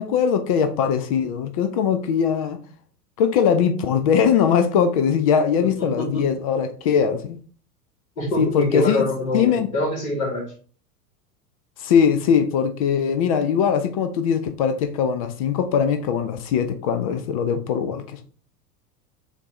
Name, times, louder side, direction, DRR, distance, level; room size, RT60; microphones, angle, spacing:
voice 1, 0.0-2.6 3.2-7.4 8.4-9.0 9.3-9.7 11.8-18.2, left 7 dB, 25° left, 0.3 m, -21 dB
voice 2, 8.2-10.5, left 2 dB, 60° left, 2.1 m, -24 dB
6.4 x 2.6 x 3.1 m
figure-of-eight pair, 90°, 47 cm